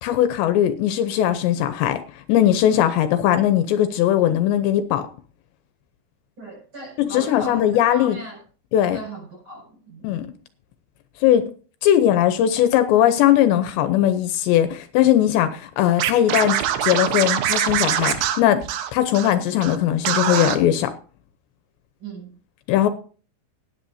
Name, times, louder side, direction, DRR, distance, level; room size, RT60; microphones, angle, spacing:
voice 1, 0.0-2.0 2.3-5.0 7.0-8.2 8.7-9.0 10.0-10.3 11.2-11.5 11.8-16.6 16.8-18.6 18.9-20.9 22.7-22.9, left 11 dB, 80° left, 3.0 m, -19 dB
voice 2, 6.4-8.4 8.9-10.1 22.0-22.3, equal, 25° right, 7.3 m, -36 dB
Scratching (performance technique), 16.0-19.3 19.6-19.8 20.0-20.6, right 10 dB, 85° right, 3.5 m, -23 dB
19.0 x 10.5 x 2.7 m
omnidirectional pair, 5.2 m